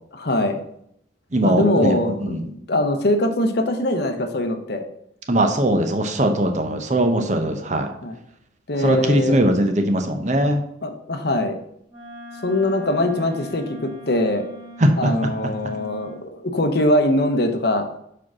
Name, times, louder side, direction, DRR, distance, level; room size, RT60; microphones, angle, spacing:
voice 1, 0.1-0.6 1.4-2.4 2.7-4.8 8.0-8.2 8.7-9.4 10.8-11.6 12.4-14.4 15.0-17.9, left 1 dB, 55° left, 7 dB, 0.8 m, -22 dB
voice 2, 1.3-2.4 5.3-7.9 8.8-10.6 14.8-15.1, right 1 dB, 40° right, 5 dB, 0.8 m, -20 dB
Wind instrument woodwind instrument, 11.9-16.2, equal, 20° right, 2.9 m, -41 dB
4.9 x 4.5 x 6.1 m, 0.73 s
head